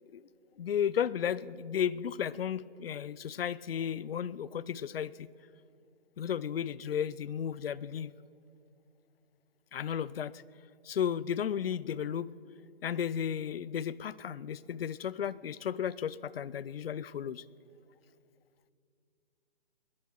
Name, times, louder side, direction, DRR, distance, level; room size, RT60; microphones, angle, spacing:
voice 1, 0.6-5.3 6.2-8.1 9.7-10.3 10.9-12.3 12.8-17.4, left 8 dB, 70° left, 20 dB, 0.6 m, -34 dB
21.0 x 10.5 x 5.9 m, 2.5 s
hypercardioid pair, 150°, 31 cm